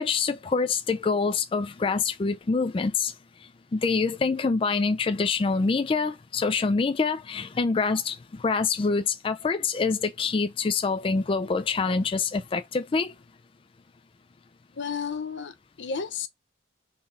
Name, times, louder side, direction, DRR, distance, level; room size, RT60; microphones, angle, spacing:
voice 1, 0.0-3.1 3.7-13.1, left 4 dB, 30° left, 0.3 m, -26 dB
voice 2, 14.8-16.3, left 6 dB, 80° left, 0.7 m, -32 dB
3.8 x 2.7 x 4.0 m
head